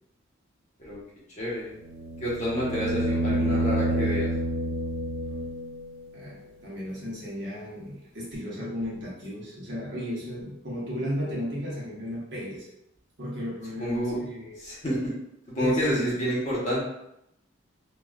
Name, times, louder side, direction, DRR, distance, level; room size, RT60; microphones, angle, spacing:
voice 1, 1.4-1.7 2.2-4.3 13.8-14.2 14.6-15.1 15.5-16.9, equal, 35° left, -7 dB, 0.9 m, -28 dB
sound 1, 1.8-5.9 8.3-8.4, right 1 dB, 85° right, 0.4 m, -28 dB
voice 2, 6.1-12.6 13.2-14.6 15.6-16.1, equal, 65° right, -6 dB, 1.1 m, -34 dB
3.1 x 2.4 x 2.3 m, 0.81 s
head